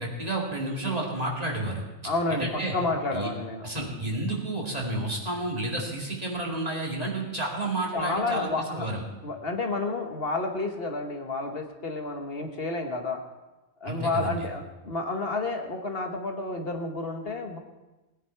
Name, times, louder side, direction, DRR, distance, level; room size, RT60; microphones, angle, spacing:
voice 1, 0.0-1.8 2.3-2.7 3.1-3.3 3.6-9.0 13.8-14.4, right 2 dB, 35° right, -2 dB, 2.5 m, -31 dB
voice 2, 2.0-3.6 7.9-8.9 9.2-13.2 13.8-17.6, left 3 dB, 55° left, 4 dB, 1.4 m, -30 dB
19.5 x 9.9 x 4.6 m, 1.1 s
omnidirectional pair, 1.2 m